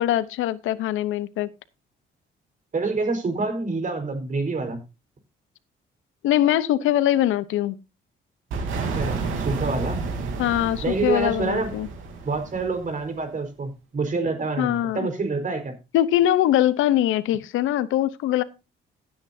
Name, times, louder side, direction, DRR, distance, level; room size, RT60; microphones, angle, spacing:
voice 1, 0.0-1.5 6.2-7.8 10.4-11.9 14.6-15.1 15.9-18.4, left 12 dB, 85° left, 0.8 m, -22 dB
voice 2, 2.7-4.8 8.9-10.0 10.8-11.7 12.2-15.7, right 3 dB, 40° right, 4.5 m, -27 dB
sound 1, 8.5-13.2, right 4 dB, 85° right, 3.2 m, -31 dB
16.0 x 9.0 x 2.7 m
cardioid pair, 90°, 20 cm